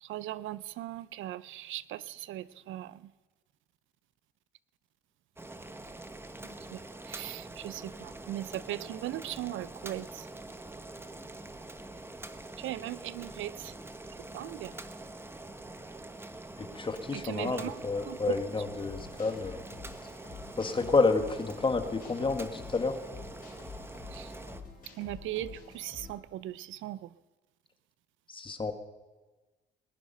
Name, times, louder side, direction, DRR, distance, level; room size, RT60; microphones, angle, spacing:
voice 1, 0.0-3.1 6.4-10.3 12.6-13.7 14.3-14.8 17.1-17.8 18.1-18.2 24.1-24.3 25.0-27.1, right 14 dB, 80° right, 17 dB, 0.5 m, -39 dB
Boiling, 5.4-24.6, right 2 dB, 10° right, 1.0 m, -45 dB
voice 2, 16.6-19.6 20.6-23.0 28.3-28.7, left 3 dB, 25° left, 6 dB, 1.4 m, -29 dB
sound 1, 18.8-26.1, left 5 dB, 45° left, 4.7 m, -48 dB
20.0 x 10.5 x 5.4 m, 1.3 s
cardioid pair, 90°, 20 cm